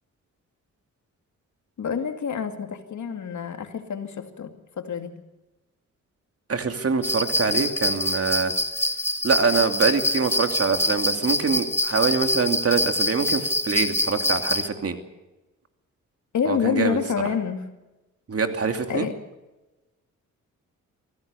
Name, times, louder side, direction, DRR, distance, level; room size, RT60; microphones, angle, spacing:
voice 1, 1.8-5.2 16.3-17.7 18.9-19.1, left 7 dB, 65° left, 6 dB, 2.5 m, -27 dB
voice 2, 6.5-8.5 9.2-15.0 16.4-17.0 18.3-19.1, right 5 dB, 45° right, 6 dB, 2.8 m, -24 dB
sound 1, 7.0-14.7, left 1 dB, 10° left, 1.4 m, -25 dB
24.0 x 16.0 x 7.0 m, 1.1 s
cardioid pair, 70°, 32 cm